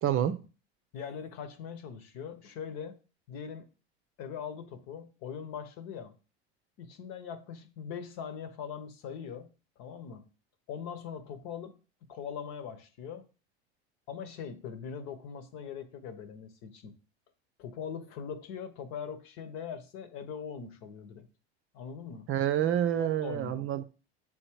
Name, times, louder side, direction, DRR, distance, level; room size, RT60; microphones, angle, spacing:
voice 1, 0.0-0.4 22.3-23.8, right 10 dB, 40° right, 0.7 m, -28 dB
voice 2, 0.9-3.0 3.3-3.7 4.2-6.2 6.8-9.5 9.8-10.3 10.7-11.8 12.1-13.3 14.1-17.0 17.6-21.3 21.7-22.3 23.0-23.7, left 7 dB, 55° left, 1.1 m, -41 dB
8.0 x 3.7 x 4.6 m
hypercardioid pair, 90°, 33 cm